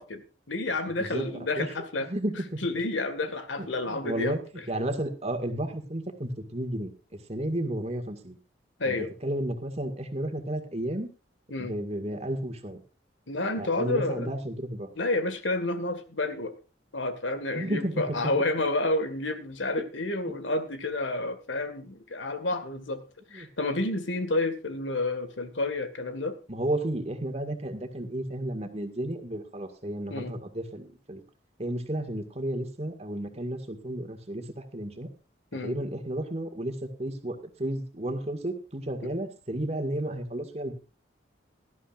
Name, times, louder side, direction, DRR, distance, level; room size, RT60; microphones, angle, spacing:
voice 1, 0.0-2.1 2.6-4.6 8.8-9.1 11.5-11.8 13.3-14.3 15.0-16.5 16.9-23.0 23.3-26.4 30.1-30.3 35.5-35.8, left 2 dB, 90° left, 10 dB, 1.9 m, -30 dB
voice 2, 2.1-2.6 3.6-4.4 4.7-6.9 7.3-8.4 8.8-9.0 9.2-11.1 11.6-12.8 13.6-14.9 17.5-18.2 23.3-23.5 26.5-31.2 31.6-35.1 35.6-40.7, right 1 dB, 35° right, 7 dB, 1.9 m, -32 dB
18.0 x 12.5 x 2.5 m, 0.33 s
head